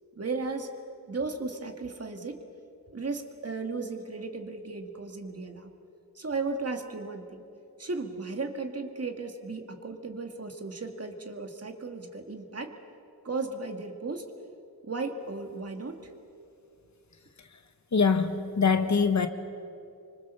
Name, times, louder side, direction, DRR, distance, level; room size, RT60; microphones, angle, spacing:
voice 1, 0.2-0.7 1.1-2.4 2.9-5.7 6.2-7.4 7.8-12.7 13.2-14.2 14.8-16.1, right 3 dB, 40° right, 5 dB, 2.1 m, -35 dB
voice 2, 17.9-19.3, left 5 dB, 45° left, 8 dB, 1.3 m, -24 dB
26.0 x 25.0 x 7.0 m, 2.7 s
wide cardioid pair, 125°, 38 cm